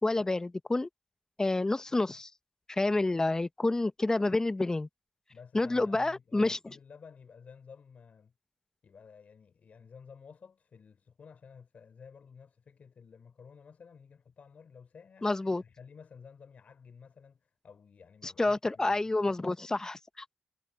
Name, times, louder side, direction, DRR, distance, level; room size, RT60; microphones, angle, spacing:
voice 1, 0.0-0.9 1.4-2.3 2.7-4.9 5.5-6.6 15.2-15.6 18.2-20.2, left 2 dB, 20° left, 0.8 m, -29 dB
voice 2, 5.3-8.3 8.8-15.3 15.6-19.1, left 6 dB, 55° left, 5.3 m, -53 dB
cardioid pair, 65°, 3 cm